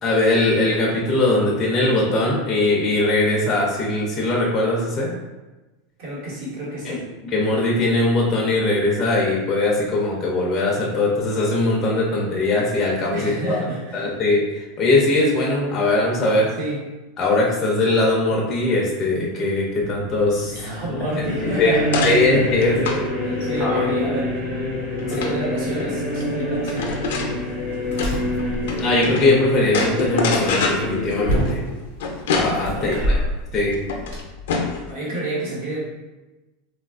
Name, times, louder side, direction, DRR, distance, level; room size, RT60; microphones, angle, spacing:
voice 1, 0.0-5.1 6.9-7.0 7.2-13.6 13.9-16.5 17.2-20.5 21.6-21.7 22.0-23.0 23.3-23.8 28.8-31.6 32.3-32.9 33.5-33.8, left 2 dB, 20° left, -3 dB, 0.4 m, -20 dB
voice 2, 6.0-7.1 13.1-14.1 16.6-16.8 20.5-22.3 23.4-24.4 25.0-27.0 32.7-33.2 34.9-35.8, right 1 dB, 60° right, -6 dB, 1.2 m, -29 dB
sound 1, 19.8-31.3, left 1 dB, 30° right, 1.3 m, -27 dB
sound 2, 21.2-29.3 29.7-34.9, left 4 dB, 85° left, 0.4 m, -28 dB
sound 3, 26.9-34.2, equal, 85° right, 1.1 m, -29 dB
3.4 x 2.3 x 2.3 m, 1.1 s
supercardioid pair, 165°, 0 cm